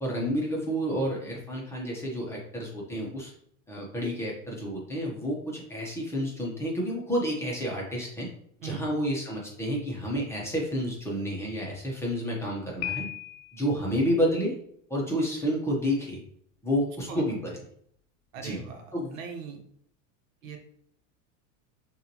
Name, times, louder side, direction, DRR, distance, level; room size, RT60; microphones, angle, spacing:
voice 1, 0.0-3.3 3.7-8.3 8.6-13.1 13.5-14.5 14.9-16.2 16.6-17.5 18.4-18.6 18.9-19.2, equal, 5° left, -4 dB, 1.1 m, -30 dB
Piano, 12.8-13.8, left 13 dB, 90° left, 0.7 m, -36 dB
voice 2, 18.3-19.6 20.4-20.6, right 7 dB, 85° right, 4 dB, 1.2 m, -39 dB
6.2 x 2.7 x 3.0 m, 0.68 s
supercardioid pair, 135°, 39 cm